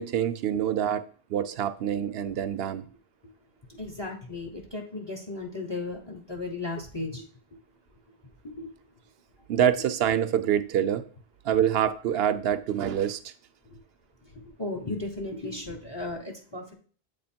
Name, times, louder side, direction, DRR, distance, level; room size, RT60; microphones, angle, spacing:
voice 1, 0.0-2.8 9.5-11.1 11.4-13.3, right 9 dB, 70° right, 0.8 m, -26 dB
voice 2, 3.7-7.3 8.4-8.7 13.7-13.8 14.3-16.7, left 2 dB, 25° left, 0.9 m, -35 dB
8.0 x 3.4 x 4.3 m
omnidirectional pair, 1.1 m